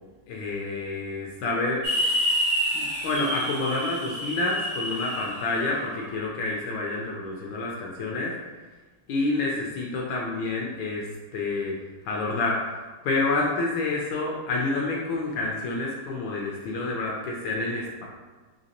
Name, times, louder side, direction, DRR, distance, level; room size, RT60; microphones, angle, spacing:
voice 1, 0.3-1.8 2.7-8.3 9.1-11.1 11.3-11.8 12.0-12.6 13.0-18.1, left 3 dB, 75° left, -2 dB, 1.2 m, -28 dB
sound 1, 1.8-6.0, equal, 90° right, 0.5 m, -28 dB
3.9 x 2.8 x 2.8 m, 1.3 s
omnidirectional pair, 2.4 m